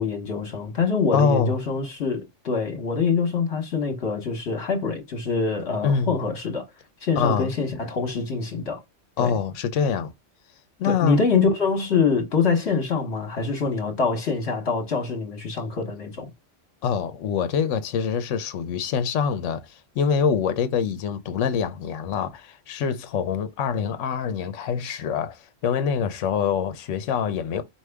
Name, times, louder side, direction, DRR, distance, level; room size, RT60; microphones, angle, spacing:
voice 1, 0.0-6.6 7.0-8.8 9.2-9.3 10.8-16.3, left 5 dB, 60° left, 1.2 m, -25 dB
voice 2, 1.1-1.5 5.8-6.1 7.2-7.5 9.2-10.1 10.8-11.2 16.8-27.6, left 6 dB, 80° left, 1.0 m, -25 dB
4.7 x 2.7 x 3.4 m
omnidirectional pair, 1.3 m